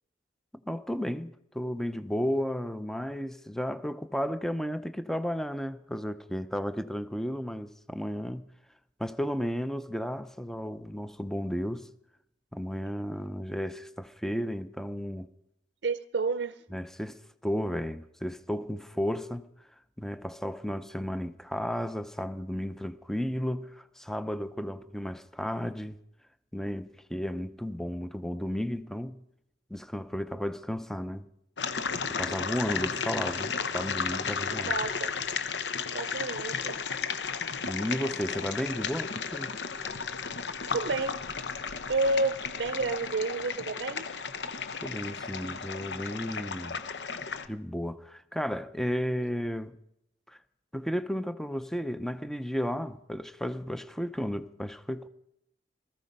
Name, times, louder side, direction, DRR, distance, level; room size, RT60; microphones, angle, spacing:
voice 1, 0.6-8.5 9.0-11.9 12.5-15.3 16.7-19.5 20.0-26.0 26.5-29.2 29.7-31.3 32.1-34.7 37.7-39.5 44.8-46.8 47.5-49.8 50.3-50.4 50.7-55.1, equal, 5° left, 0.6 m, -33 dB
voice 2, 15.8-16.6 34.7-35.1 35.9-36.8 40.7-41.2 41.9-44.1, right 3 dB, 85° right, 0.5 m, -30 dB
sound 1, 31.6-47.5, left 5 dB, 80° left, 0.9 m, -34 dB
19.0 x 14.0 x 5.3 m
head